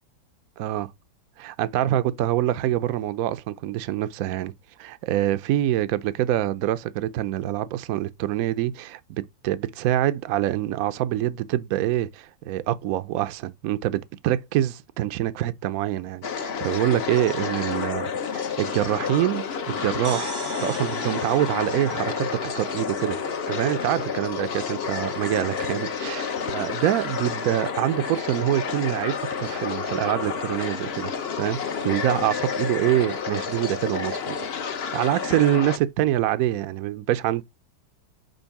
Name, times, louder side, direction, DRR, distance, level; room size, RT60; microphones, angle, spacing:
voice 1, 0.6-0.9 1.4-4.5 4.8-20.3 20.6-23.2 23.5-31.1 31.4-34.4 34.9-37.4, right 13 dB, 70° right, 0.9 m, -25 dB
sound 1, 16.2-35.8, left 6 dB, 55° left, 0.7 m, -30 dB
sound 2, 20.0-23.7, right 4 dB, 40° right, 0.4 m, -39 dB
5.4 x 4.5 x 5.8 m
omnidirectional pair, 1.9 m